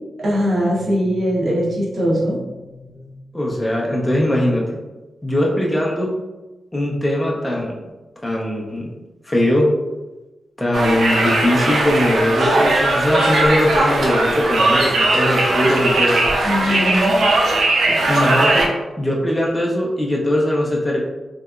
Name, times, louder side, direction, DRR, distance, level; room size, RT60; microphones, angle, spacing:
voice 1, 0.2-3.2 16.4-17.2 17.9-18.0, equal, 60° right, -5 dB, 0.9 m, -21 dB
voice 2, 3.3-4.8 5.2-6.2 6.7-7.7 8.2-8.9 9.2-9.7 10.6-16.3 18.1-18.7 19.0-21.0, left 1 dB, 10° left, -3 dB, 0.5 m, -20 dB
Conversation, 10.7-18.7, right 2 dB, 75° right, 0.5 m, -18 dB
3.2 x 2.9 x 2.4 m, 1.1 s
wide cardioid pair, 120°, 0 cm